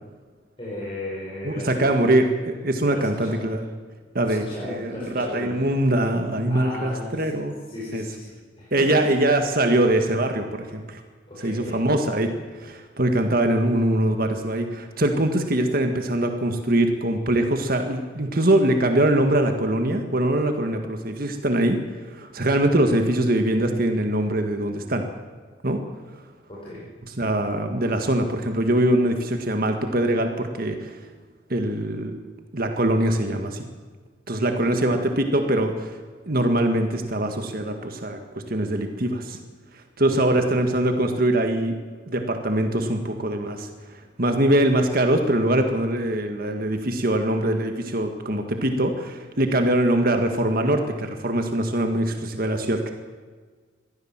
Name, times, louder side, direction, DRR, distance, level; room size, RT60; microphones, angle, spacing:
voice 1, 0.6-2.1 2.9-3.4 4.2-5.5 6.5-7.3 7.7-8.3 8.6-8.9 11.3-11.8 26.5-26.9 34.6-34.8 40.1-40.4, left 1 dB, 30° left, -7 dB, 5.8 m, -35 dB
voice 2, 1.4-2.2 2.6-3.6 4.1-7.6 7.9-8.0 8.7-11.0 11.4-21.8 22.0-25.0 25.6-25.8 27.2-31.0 31.5-32.2 32.5-33.6 34.3-36.0 36.2-38.2 38.5-39.4 40.0-41.7 42.1-43.7 44.2-52.9, right 1 dB, 50° right, 5 dB, 1.8 m, -23 dB
23.5 x 15.5 x 7.5 m, 1.5 s
head